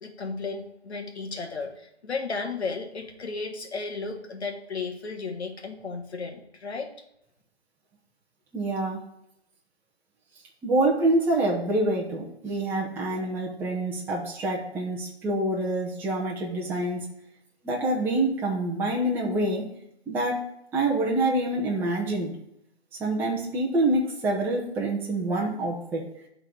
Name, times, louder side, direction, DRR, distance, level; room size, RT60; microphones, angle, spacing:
voice 1, 0.0-6.9, left 4 dB, 75° left, 3 dB, 1.5 m, -34 dB
voice 2, 8.5-9.0 10.6-17.1 17.6-19.6 20.1-20.4 20.7-22.3 23.0-26.0, right 2 dB, 5° right, -3 dB, 0.8 m, -26 dB
11.5 x 3.9 x 4.6 m, 0.79 s
hypercardioid pair, 145°, 33 cm